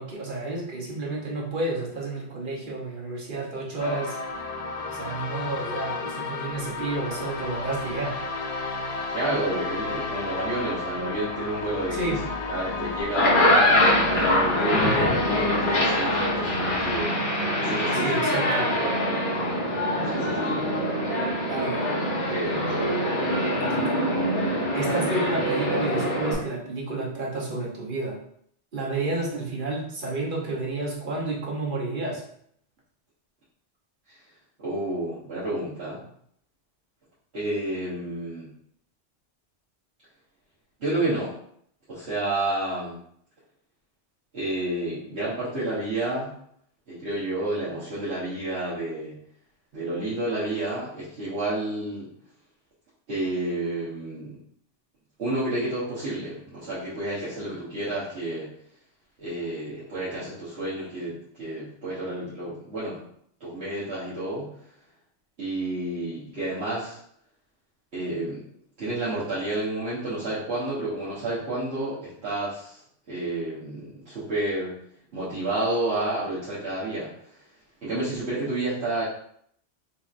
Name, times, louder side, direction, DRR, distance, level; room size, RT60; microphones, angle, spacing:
voice 1, 0.0-4.2 4.9-8.2 11.9-12.2 17.9-18.8 21.5-21.9 23.5-24.0 24.7-28.2 28.7-32.2, right 2 dB, 50° right, -3 dB, 1.0 m, -30 dB
sound 1, 3.8-17.0, left 3 dB, 80° left, 0.3 m, -33 dB
voice 2, 9.1-12.2 12.5-13.6 14.1-17.2 17.6-18.2 18.7-18.9 20.1-20.6 22.1-23.0 34.6-36.0 37.3-38.5 40.8-41.3 41.9-43.0 44.3-46.3 46.9-49.2 49.7-52.1 53.1-54.4 55.2-58.5 59.2-63.0 63.4-64.5 65.4-67.0 67.9-68.4 68.8-72.8 73.1-74.7 75.1-77.1 77.8-79.0, right 2 dB, 65° right, -11 dB, 1.4 m, -30 dB
sound 2, 13.0-26.3, left 1 dB, 45° left, 1.1 m, -24 dB
4.1 x 2.9 x 2.5 m, 0.67 s
omnidirectional pair, 1.2 m